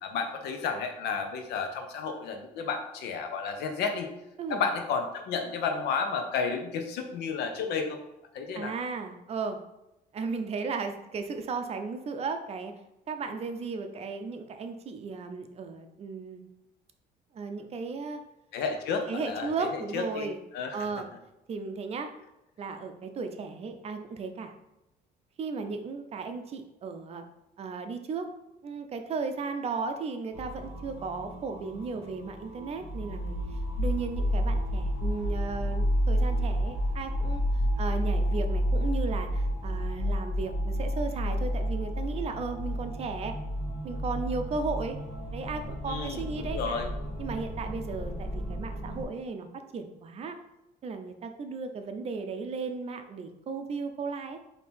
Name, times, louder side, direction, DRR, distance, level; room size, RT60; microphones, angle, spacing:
voice 1, 0.0-4.1 4.5-8.0 8.3-8.7 18.5-20.9 45.9-46.9, left 5 dB, 75° left, 5 dB, 0.7 m, -32 dB
voice 2, 8.5-9.6 10.1-12.7 13.1-16.4 17.3-18.2 19.1-20.4 20.7-21.1 21.5-22.1 22.6-24.5 25.4-27.2 27.6-28.3 28.6-33.4 33.8-43.4 43.8-45.0 45.3-46.9 47.2-49.5 49.7-50.4 50.8-54.4, right 4 dB, 40° right, 6 dB, 0.5 m, -35 dB
sound 1, 30.3-49.1, equal, 5° right, 1.4 m, -31 dB
4.3 x 2.8 x 3.5 m, 0.92 s
cardioid pair, 110°, 17 cm